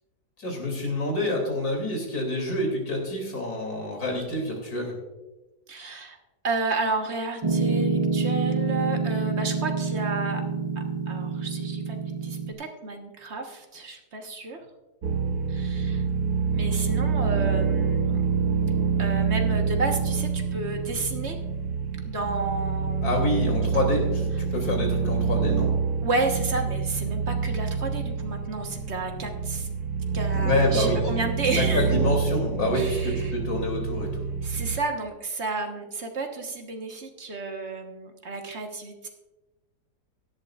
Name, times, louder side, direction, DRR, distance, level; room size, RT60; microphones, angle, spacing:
voice 1, 0.4-4.9 23.0-25.7 30.3-31.0 31.5-34.2, left 1 dB, 65° left, 1 dB, 3.3 m, -27 dB
voice 2, 5.7-6.2 6.4-10.4 11.1-12.0 12.2-14.6 15.5-16.0 16.5-18.2 19.0-21.4 22.0-23.2 23.7-23.8 26.0-29.7 30.1-31.9 32.7-33.3 34.4-39.1, right 3 dB, 45° right, 3 dB, 1.5 m, -31 dB
Piano, 7.4-12.5, right 4 dB, 25° right, 0.7 m, -27 dB
sound 1, 15.0-34.8, right 5 dB, 70° right, 1.6 m, -27 dB
17.0 x 11.5 x 2.4 m, 1.1 s
omnidirectional pair, 1.8 m